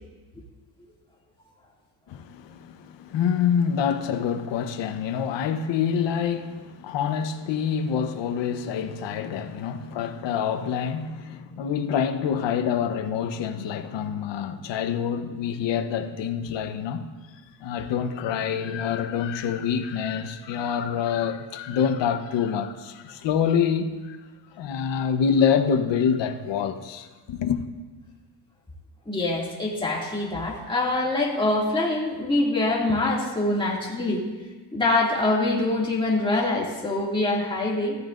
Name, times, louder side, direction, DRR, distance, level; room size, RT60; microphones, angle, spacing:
voice 1, 2.1-17.1 17.6-24.2 24.6-27.6, left 7 dB, 65° left, 1.1 m, -26 dB
voice 2, 29.1-34.2 34.7-38.0, left 2 dB, 10° left, 2.4 m, -24 dB
15.0 x 13.0 x 2.6 m
cardioid pair, 115°, 47 cm